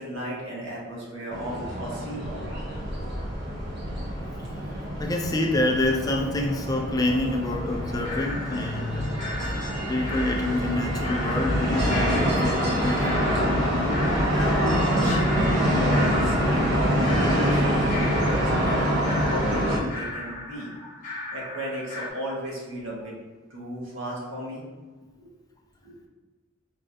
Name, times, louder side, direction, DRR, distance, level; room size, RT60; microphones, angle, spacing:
voice 1, 0.0-2.3 13.9-20.7 21.3-23.1 23.5-24.6 25.2-25.3 25.8-25.9, equal, 80° right, -5 dB, 1.4 m, -34 dB
sound 1, 1.3-19.8, equal, 60° right, 1.1 m, -25 dB
voice 2, 5.0-9.1 9.5-9.6 9.9-13.2 13.5-13.7 20.8-20.9, left 2 dB, 20° left, 1 dB, 0.4 m, -27 dB
sound 2, 8.0-22.1, left 2 dB, 40° left, 0.7 m, -38 dB
5.1 x 3.2 x 2.6 m, 1.3 s
head